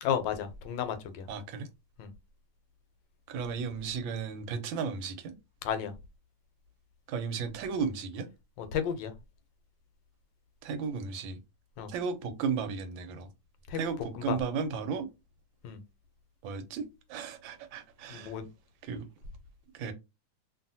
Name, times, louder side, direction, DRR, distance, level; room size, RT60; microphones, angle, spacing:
voice 1, 0.0-1.2 2.0-2.1 5.6-5.9 8.6-9.1 11.8-11.9 13.7-13.8 14.1-14.4 15.6-15.8 18.1-18.5, left 8 dB, 80° left, 1.3 m, -32 dB
voice 2, 1.3-1.7 3.3-5.3 7.1-8.3 10.6-11.4 11.9-13.3 13.7-15.1 16.4-18.3 18.8-19.0 19.7-19.9, right 5 dB, 90° right, 1.4 m, -34 dB
2.7 x 2.7 x 2.6 m
omnidirectional pair, 2.0 m